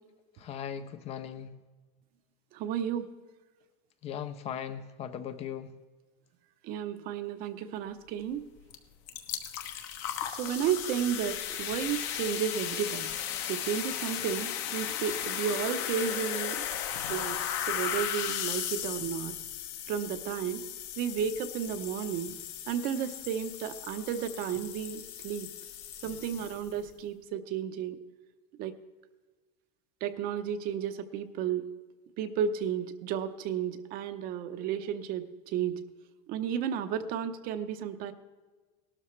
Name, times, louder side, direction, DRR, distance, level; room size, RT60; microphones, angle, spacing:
voice 1, 0.4-1.5 4.0-5.7, left 9 dB, 30° left, 11 dB, 0.6 m, -38 dB
voice 2, 2.5-3.1 6.6-8.5 10.3-13.1 13.4-16.6 17.1-17.4 17.7-19.4 19.9-20.6 21.0-22.4 22.7-25.5 26.0-28.0 28.6-28.7 30.0-31.7 32.2-35.8 36.3-38.1, right 8 dB, 45° right, 9 dB, 0.8 m, -33 dB
sound 1, 8.7-8.8 9.1-26.8, left 10 dB, 60° left, 1.2 m, -36 dB
18.0 x 12.5 x 3.2 m, 1.3 s
cardioid pair, 160°, 20 cm